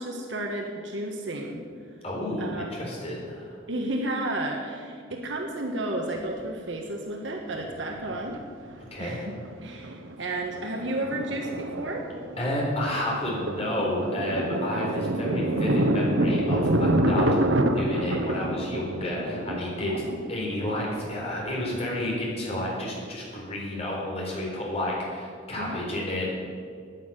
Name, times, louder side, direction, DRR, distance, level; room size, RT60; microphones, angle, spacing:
voice 1, 0.0-1.6 2.4-2.8 3.7-8.4 8.6-9.4 9.6-12.1 19.9-20.2 25.6-26.0, right 1 dB, 65° right, 1 dB, 1.5 m, -32 dB
voice 2, 2.0-3.5 8.9-9.2 12.4-17.4 17.7-20.0 20.3-26.3, left 1 dB, 30° left, -3 dB, 4.3 m, -30 dB
Thunder, 6.2-6.3 7.6-8.4 8.7-8.8 9.2-9.5 9.8-22.2, right 1 dB, 85° right, 1.1 m, -27 dB
11.5 x 9.7 x 8.9 m, 2.1 s
head